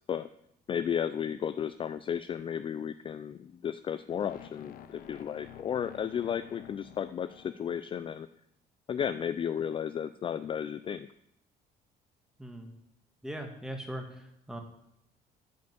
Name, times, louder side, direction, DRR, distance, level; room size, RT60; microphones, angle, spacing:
voice 1, 0.7-8.3 8.9-11.1, left 8 dB, 30° left, 12 dB, 0.3 m, -33 dB
sound 1, 4.1-8.2, left 10 dB, 60° left, 0.7 m, -51 dB
voice 2, 12.4-12.7 13.2-14.6, right 1 dB, 5° right, 4 dB, 1.6 m, -40 dB
9.1 x 5.1 x 7.6 m, 0.77 s
cardioid pair, 110°, 17 cm